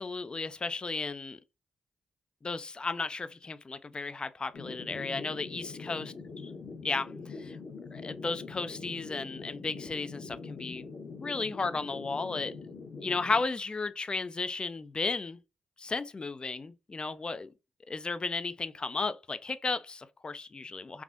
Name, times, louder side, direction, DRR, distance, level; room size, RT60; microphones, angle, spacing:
voice 1, 0.0-1.4 2.4-6.0 6.8-7.6 7.9-10.9 11.2-12.5 13.0-15.4 15.8-17.5 17.9-21.0, left 3 dB, 35° left, 0.4 m, -34 dB
sound 1, 4.5-13.4, left 4 dB, 65° left, 0.9 m, -43 dB
3.4 x 2.5 x 2.5 m
supercardioid pair, 50°, 3 cm